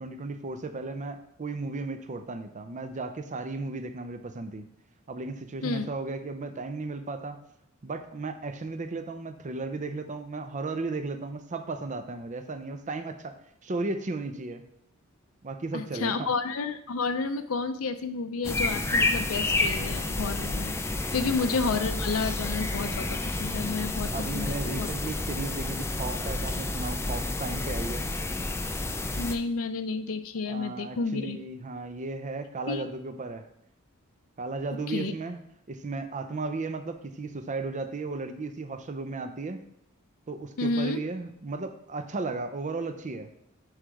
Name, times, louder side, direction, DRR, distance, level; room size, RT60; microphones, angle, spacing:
voice 1, 0.0-4.7 5.1-7.4 7.8-13.4 13.6-14.6 15.4-16.3 21.1-21.3 24.1-28.1 30.5-33.5 34.4-35.4 35.7-39.6 40.3-43.3, right 3 dB, 35° right, 8 dB, 0.6 m, -35 dB
voice 2, 15.7-20.8 21.1-24.9 29.2-31.4 32.7-32.8 34.9-35.1 40.6-41.0, left 4 dB, 75° left, 8 dB, 0.5 m, -30 dB
sound 1, 18.4-29.3, left 2 dB, 10° left, 0.4 m, -30 dB
9.8 x 3.3 x 4.7 m, 0.74 s
head